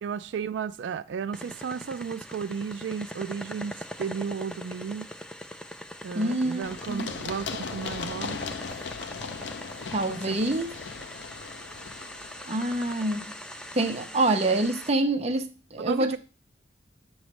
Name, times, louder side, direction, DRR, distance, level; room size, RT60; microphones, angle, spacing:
voice 1, 0.0-5.1 6.0-8.4 10.1-10.4 15.8-16.2, right 6 dB, 75° right, 0.3 m, -33 dB
sound 1, 1.3-14.9, equal, 5° left, 0.4 m, -42 dB
voice 2, 6.1-7.1 9.9-10.7 12.5-13.3 13.7-16.2, right 2 dB, 35° right, 0.8 m, -26 dB
Run, 6.6-14.3, left 5 dB, 70° left, 0.5 m, -38 dB
7.9 x 3.1 x 6.1 m
head